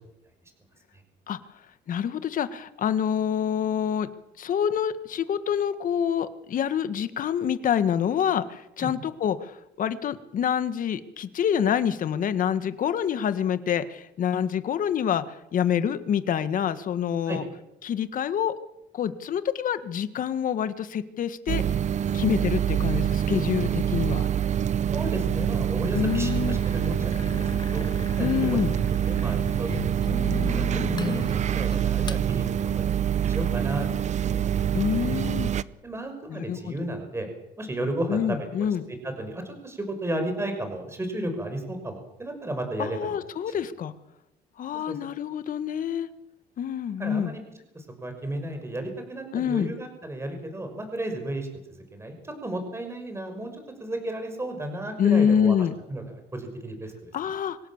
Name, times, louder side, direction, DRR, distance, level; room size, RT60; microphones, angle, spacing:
voice 1, 1.9-4.1 4.4-17.4 17.8-18.5 18.9-21.6 22.1-24.3 25.9-26.6 28.2-28.7 34.7-35.5 36.3-36.7 38.1-38.8 42.8-43.9 44.6-46.1 46.6-47.3 49.3-49.7 55.0-55.7 57.1-57.6, left 8 dB, 55° left, 12 dB, 1.7 m, -26 dB
sound 1, 21.5-35.6, right 9 dB, 45° right, 0.8 m, -26 dB
voice 2, 24.9-27.9 28.2-28.6 28.9-33.9 35.8-37.3 37.6-38.7 39.0-43.2 43.5-43.7 44.9-45.0 47.0-47.4 47.7-55.5 55.9-57.1, right 1 dB, 15° right, 6 dB, 6.0 m, -34 dB
sound 2, 25.9-32.2, left 4 dB, 25° left, 1.7 m, -36 dB
25.5 x 17.5 x 7.4 m, 0.88 s
cardioid pair, 110°, 17 cm